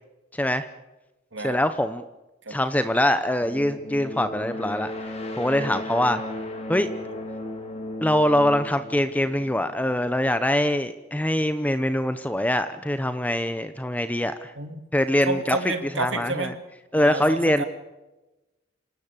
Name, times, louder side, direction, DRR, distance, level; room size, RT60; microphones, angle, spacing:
voice 1, 0.3-0.7 1.4-2.0 2.5-4.9 5.4-6.2 6.7-6.9 8.0-14.5 14.9-15.6 15.9-16.5 16.9-17.6, left 1 dB, 10° left, 11 dB, 0.8 m, -23 dB
sound 1, 3.4-10.1, left 1 dB, 35° left, 3.7 m, -35 dB
voice 2, 15.3-16.5 16.9-17.6, right 2 dB, 70° right, 8 dB, 2.6 m, -30 dB
27.0 x 18.0 x 8.3 m, 1.0 s
head